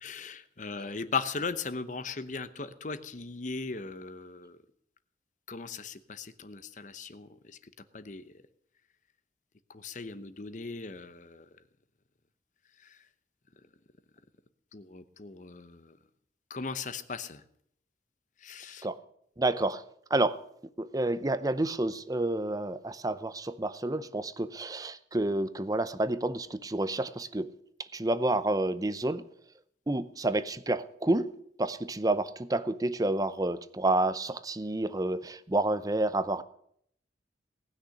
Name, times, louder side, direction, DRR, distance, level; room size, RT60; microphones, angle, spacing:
voice 1, 0.0-4.6 5.5-7.6 7.9-8.2 9.7-11.4 12.8-12.9 14.7-16.0 16.5-17.4 18.4-18.9, left 4 dB, 45° left, 12 dB, 0.8 m, -38 dB
voice 2, 19.4-19.8 20.1-20.4 20.8-27.5 27.9-29.2 29.9-31.3 31.6-36.4, right 2 dB, 20° right, 14 dB, 0.6 m, -29 dB
18.5 x 6.5 x 9.7 m, 0.70 s
head